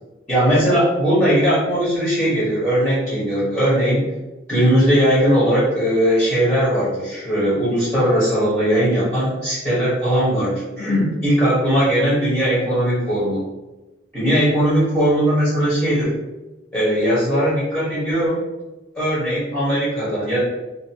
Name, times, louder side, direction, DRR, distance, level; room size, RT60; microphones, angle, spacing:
voice 1, 0.3-4.1 4.5-13.4 14.1-16.2 16.7-18.4 18.9-20.4, equal, 15° left, -11 dB, 1.0 m, -19 dB
2.5 x 2.5 x 2.8 m, 1.1 s
head